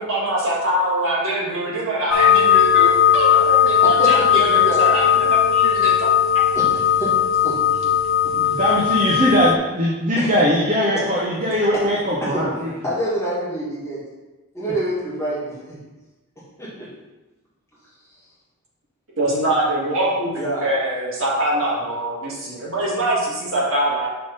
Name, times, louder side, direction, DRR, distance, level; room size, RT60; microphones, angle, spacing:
voice 1, 0.0-6.1 19.2-24.1, right 1 dB, 70° right, -5 dB, 1.9 m, -23 dB
sound 1, 2.1-9.6, left 9 dB, 65° left, 0.4 m, -17 dB
voice 2, 3.8-5.3 6.6-7.2 7.4-7.6 8.2-8.4 10.2-10.3 11.6-11.8 12.2-12.4 12.8-14.0 14.5-15.8 16.6-16.9 20.3-20.8, right 1 dB, 15° left, -9 dB, 1.9 m, -27 dB
voice 3, 8.4-12.7, equal, 35° right, -5 dB, 0.9 m, -20 dB
5.7 x 3.8 x 5.2 m, 1.1 s
head